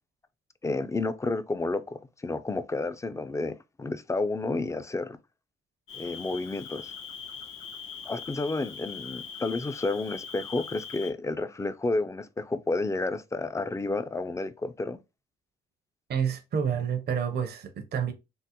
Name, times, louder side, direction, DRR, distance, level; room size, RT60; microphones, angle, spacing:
voice 1, 0.6-5.2 5.9-6.9 8.0-15.0, left 3 dB, 15° left, 0.4 m, -31 dB
Cricket, 5.9-11.1, left 6 dB, 80° left, 1.1 m, -41 dB
voice 2, 16.1-18.1, right 7 dB, 55° right, 0.6 m, -29 dB
3.6 x 2.0 x 2.8 m
cardioid pair, 70°, 20 cm